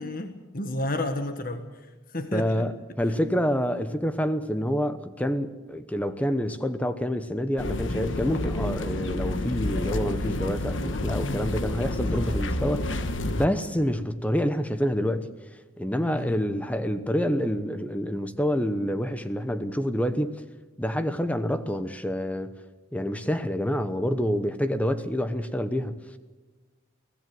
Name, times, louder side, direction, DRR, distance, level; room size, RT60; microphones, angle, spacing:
voice 1, 0.0-1.6 2.1-2.6 11.1-11.7 16.1-16.4, left 1 dB, 45° left, 1.5 m, -31 dB
voice 2, 2.3-15.3 15.8-20.4 20.8-22.5 22.9-26.0, equal, 5° left, 0.9 m, -27 dB
sound 1, 7.6-13.5, left 1 dB, 75° left, 1.3 m, -29 dB
23.5 x 17.0 x 7.7 m
head